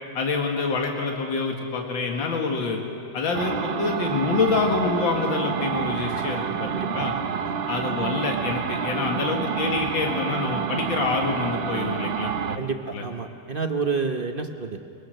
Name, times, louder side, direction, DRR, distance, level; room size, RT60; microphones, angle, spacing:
voice 1, 0.1-2.8 3.1-7.1 7.7-12.6 12.9-13.0, left 4 dB, 80° left, 1 dB, 2.5 m, -26 dB
sound 1, 3.3-12.6, right 7 dB, 75° right, 0.5 m, -28 dB
voice 2, 6.7-7.5 12.6-14.8, right 4 dB, 40° right, 5 dB, 0.8 m, -29 dB
23.0 x 21.5 x 6.5 m, 2.5 s
omnidirectional pair, 2.1 m